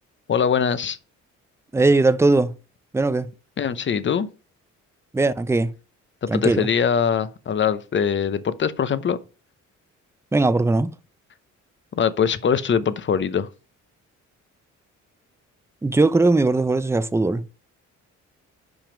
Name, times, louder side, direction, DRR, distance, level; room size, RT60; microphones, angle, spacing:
voice 1, 0.3-1.0 3.6-4.3 6.2-9.2 12.0-13.5, left 7 dB, 40° left, 0.8 m, -22 dB
voice 2, 1.7-2.5 2.9-3.3 5.1-5.7 6.3-6.7 10.3-10.9 15.8-17.4, right 2 dB, 10° right, 0.5 m, -19 dB
6.1 x 5.1 x 4.9 m
cardioid pair, 90°, 30 cm